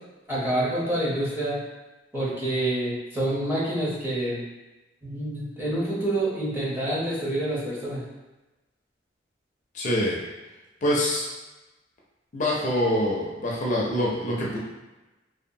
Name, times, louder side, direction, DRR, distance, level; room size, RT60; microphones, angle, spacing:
voice 1, 0.3-1.6 2.1-4.4 5.0-8.0, right 1 dB, 10° right, -7 dB, 0.7 m, -27 dB
voice 2, 9.7-10.2 10.8-11.2 12.3-14.6, left 1 dB, 40° left, -4 dB, 0.4 m, -25 dB
2.7 x 2.2 x 2.6 m, 1.1 s
head